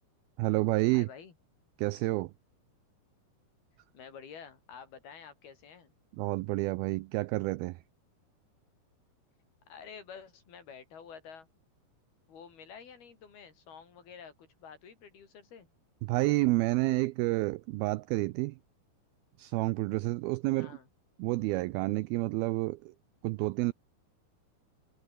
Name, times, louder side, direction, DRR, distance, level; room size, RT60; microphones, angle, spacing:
voice 1, 0.4-1.1 1.8-2.3 6.2-7.8 16.0-18.6 19.4-20.7 21.2-22.9 23.2-23.7, right 21 dB, 85° right, 2.2 m, -29 dB
voice 2, 0.9-1.3 3.9-5.9 9.7-11.5 12.3-15.7 20.6-20.9, left 6 dB, 65° left, 5.7 m, -49 dB
omnidirectional pair, 4.9 m